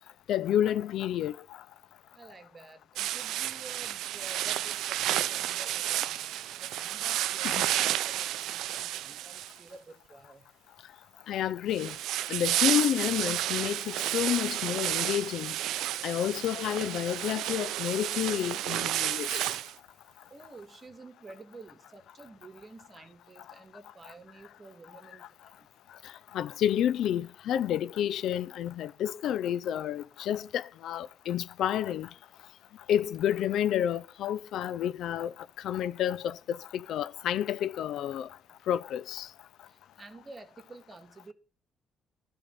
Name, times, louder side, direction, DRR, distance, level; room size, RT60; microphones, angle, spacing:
voice 1, 0.3-1.3 7.4-7.6 11.3-11.9 12.3-15.6 16.0-19.5 26.3-32.1 32.9-35.3 35.6-38.3 38.7-39.3, left 10 dB, 80° left, 0.4 m, -30 dB
voice 2, 2.1-6.2 6.5-10.5 20.3-25.3 25.6-25.7 39.7-41.3, right 3 dB, 30° right, 2.0 m, -50 dB
sound 1, 3.0-9.8 11.7-19.7, right 13 dB, 85° right, 0.4 m, -31 dB
12.5 x 4.3 x 8.0 m
cardioid pair, 90°, 0 cm